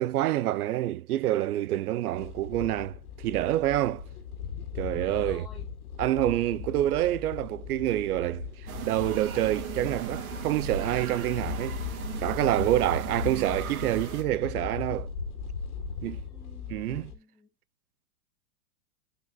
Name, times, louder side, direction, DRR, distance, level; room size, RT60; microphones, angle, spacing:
voice 1, 0.0-4.0 4.7-5.4 6.0-8.5 8.8-11.8 12.2-15.1 16.0-16.2 16.7-17.1, right 14 dB, 85° right, 0.7 m, -27 dB
sound 1, 2.1-17.1, left 6 dB, 80° left, 2.2 m, -38 dB
voice 2, 4.9-5.7 6.2-6.8 16.0-17.5, left 3 dB, 5° left, 2.2 m, -54 dB
sound 2, 8.7-14.2, right 7 dB, 70° right, 1.9 m, -37 dB
9.4 x 5.3 x 2.3 m
supercardioid pair, 175°, 44 cm